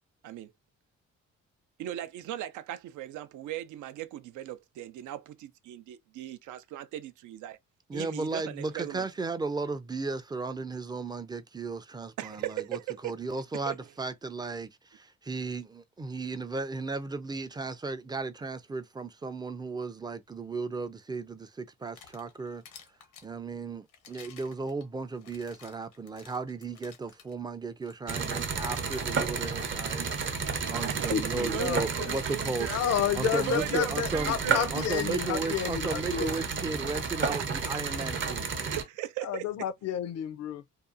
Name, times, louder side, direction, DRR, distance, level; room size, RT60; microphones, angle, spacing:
voice 1, 1.8-7.6 7.9-9.1 12.2-13.2 13.5-13.8 30.9-32.8 33.3-34.7 37.3-37.4 38.3-38.4 38.6-39.5, right 13 dB, 75° right, 0.5 m, -38 dB
voice 2, 7.9-22.6 23.2-30.1 30.6-32.7 33.2-34.4 34.7-38.5, right 3 dB, 15° right, 0.4 m, -35 dB
sound 1, 21.7-23.3 23.9-27.3 27.8-28.0 28.6-28.8 31.0-31.1 32.2-35.7, left 7 dB, 90° left, 0.9 m, -53 dB
sound 2, 28.1-38.8, right 5 dB, 40° right, 0.7 m, -32 dB
voice 3, 30.9-32.2 32.7-36.4 39.2-40.7, left 9 dB, 60° left, 0.4 m, -31 dB
2.6 x 2.3 x 2.5 m
cardioid pair, 90°, 30 cm